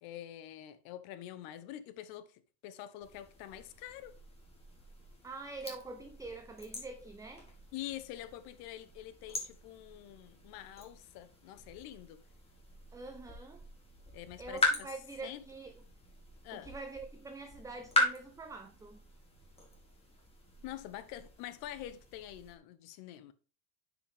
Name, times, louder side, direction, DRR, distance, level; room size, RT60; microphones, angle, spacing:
voice 1, 0.0-4.1 7.7-12.2 14.1-14.9 15.2-15.4 16.4-16.7 20.6-23.3, left 12 dB, 50° left, 1.0 m, -46 dB
sound 1, 3.0-22.6, left 2 dB, 10° left, 2.6 m, -40 dB
voice 2, 5.2-7.5 12.9-13.7 14.4-15.7 16.5-19.0, right 3 dB, 5° right, 0.7 m, -45 dB
9.6 x 5.2 x 3.5 m
hypercardioid pair, 95°, 47 cm